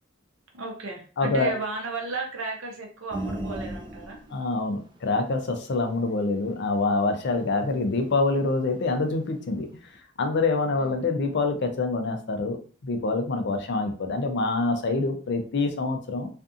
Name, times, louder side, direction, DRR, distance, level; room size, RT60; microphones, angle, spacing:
voice 1, 0.5-4.2 10.7-11.0, right 3 dB, 75° right, 1 dB, 0.8 m, -34 dB
voice 2, 1.2-1.5 4.3-9.7 10.2-16.3, left 3 dB, 55° left, 5 dB, 0.5 m, -26 dB
sound 1, 3.1-8.9 9.3-9.4, right 1 dB, 20° right, 0.3 m, -38 dB
2.5 x 2.4 x 2.5 m, 0.39 s
head